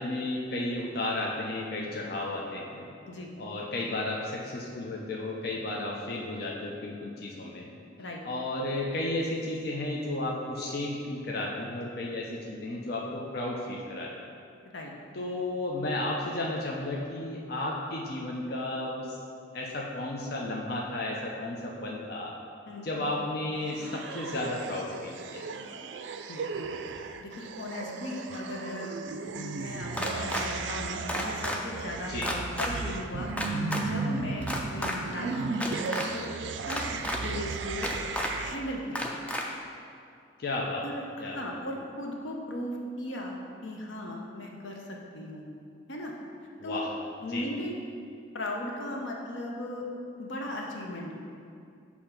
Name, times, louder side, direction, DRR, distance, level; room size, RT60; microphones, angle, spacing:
voice 1, 0.0-2.9 3.4-7.7 8.2-14.3 15.1-19.2 19.5-22.3 22.8-25.4 32.1-32.3 40.4-40.9 41.2-41.6 46.6-46.9 47.3-47.5, left 2 dB, 55° left, -2 dB, 0.6 m, -33 dB
sound 1, 23.5-38.6, right 4 dB, 70° right, 0.3 m, -36 dB
voice 2, 27.2-33.4 33.8-36.3 36.7-37.9 38.4-39.2 40.8-43.4 43.6-45.5 45.9-46.1 46.6-46.9 47.2-47.7 48.3-49.9 50.2-51.1, left 1 dB, 85° left, 0 dB, 0.8 m, -37 dB
sound 2, 29.9-30.4 31.1-31.6 32.2-32.7 33.4-33.8 34.4-34.9 35.5-36.1 36.7-37.2 37.8-38.3 38.9-39.4, left 1 dB, 5° left, 0.4 m, -31 dB
6.7 x 2.8 x 5.7 m, 2.4 s
head